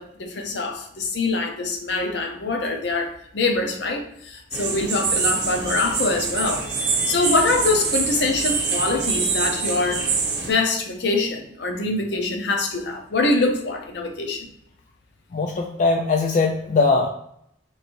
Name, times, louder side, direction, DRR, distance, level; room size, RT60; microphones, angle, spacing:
voice 1, 0.0-10.1 10.4-14.5, left 3 dB, 70° left, 2 dB, 0.7 m, -24 dB
sound 1, 4.5-10.5, right 4 dB, 65° right, 0.8 m, -25 dB
voice 2, 15.3-17.1, left 3 dB, 45° left, 2 dB, 0.3 m, -20 dB
3.1 x 2.6 x 4.3 m, 0.72 s
head